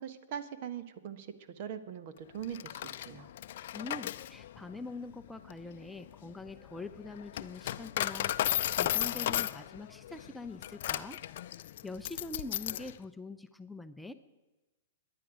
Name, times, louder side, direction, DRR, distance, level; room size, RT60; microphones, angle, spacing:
voice 1, 0.0-3.3, right 9 dB, 50° right, 11 dB, 1.2 m, -42 dB
Coin (dropping), 2.4-12.9, left 12 dB, 60° left, 0.5 m, -35 dB
voice 2, 3.7-11.2 11.5-14.1, left 3 dB, 5° left, 8 dB, 0.7 m, -44 dB
22.0 x 10.5 x 5.0 m, 1.1 s
hypercardioid pair, 110°, 0 cm